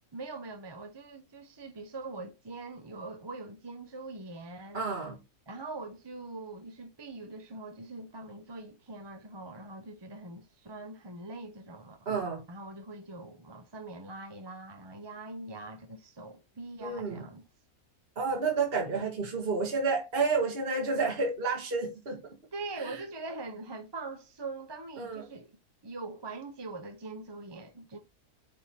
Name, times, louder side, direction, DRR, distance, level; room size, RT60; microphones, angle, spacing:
voice 1, 0.1-4.9 5.5-12.0 12.5-17.4 22.5-25.5 25.8-28.0, right 3 dB, 25° right, 0.6 m, -42 dB
voice 2, 4.7-5.2 12.1-12.4 16.8-17.3 18.2-22.2 22.8-23.0 25.0-25.3, right 4 dB, 40° right, 1.6 m, -30 dB
8.6 x 3.6 x 4.3 m
omnidirectional pair, 1.6 m